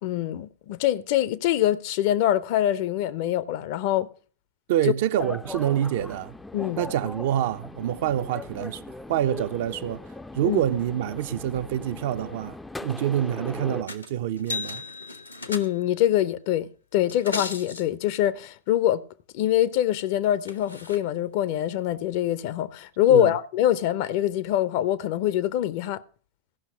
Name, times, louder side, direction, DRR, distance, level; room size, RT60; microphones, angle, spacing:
voice 1, 0.0-4.1 6.5-6.8 10.4-10.6 15.5-19.0 19.3-26.0, left 12 dB, 50° left, 0.6 m, -24 dB
voice 2, 4.7-6.4 6.8-10.1 10.3-14.8 23.1-23.3, right 11 dB, 55° right, 0.5 m, -26 dB
sound 1, 5.2-13.8, left 2 dB, 5° left, 0.4 m, -39 dB
sound 2, 13.9-14.1 14.4-16.0 17.0-17.8 20.0-20.1 20.4-21.0 21.9-22.0, left 4 dB, 85° left, 1.1 m, -35 dB
15.5 x 5.8 x 5.8 m
figure-of-eight pair, 90°, 0 cm